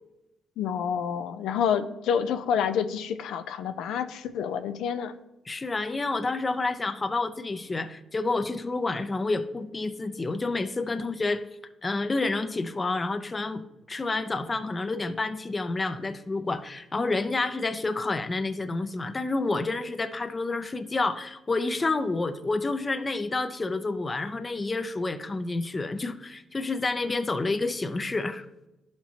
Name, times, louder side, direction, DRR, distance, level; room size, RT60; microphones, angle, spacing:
voice 1, 0.6-5.1, left 7 dB, 85° left, 9 dB, 0.4 m, -28 dB
voice 2, 5.5-11.4 11.8-28.5, left 3 dB, 25° left, 9 dB, 0.5 m, -29 dB
11.5 x 4.4 x 2.8 m, 0.94 s
cardioid pair, 90°, 0 cm